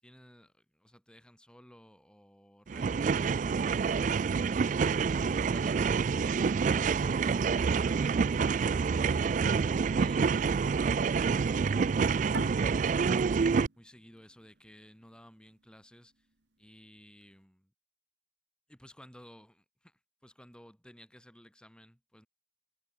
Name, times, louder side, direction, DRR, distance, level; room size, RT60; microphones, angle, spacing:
voice 1, 0.0-4.2 5.2-10.4 10.8-11.4 12.1-12.9 13.7-16.3 16.6-17.7 18.7-22.3, equal, 5° left, 7.5 m, -57 dB
sound 1, 2.7-13.7, right 5 dB, 45° right, 0.3 m, -27 dB
sound 2, 12.3-15.5, right 2 dB, 75° right, 1.9 m, -41 dB
head